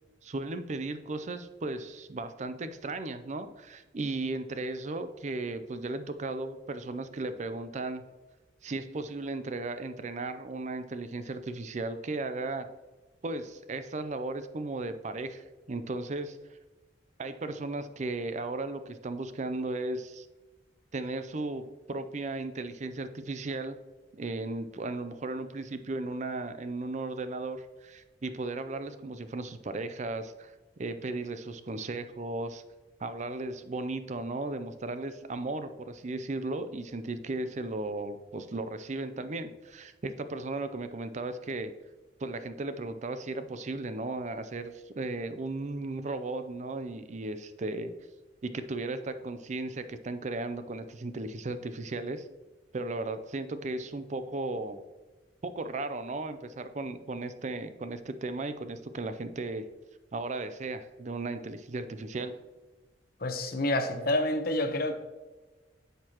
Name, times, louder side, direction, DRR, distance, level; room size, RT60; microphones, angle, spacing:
voice 1, 0.2-8.0 8.6-12.7 13.2-16.4 17.2-20.3 20.9-23.8 24.1-32.6 33.0-41.7 42.2-47.9 48.4-52.3 52.7-54.8 55.4-59.7 60.1-62.4, right 2 dB, 40° right, 11 dB, 0.5 m, -36 dB
voice 2, 63.2-64.9, left 1 dB, 55° left, 6 dB, 1.0 m, -28 dB
10.5 x 6.8 x 3.0 m, 1.2 s
head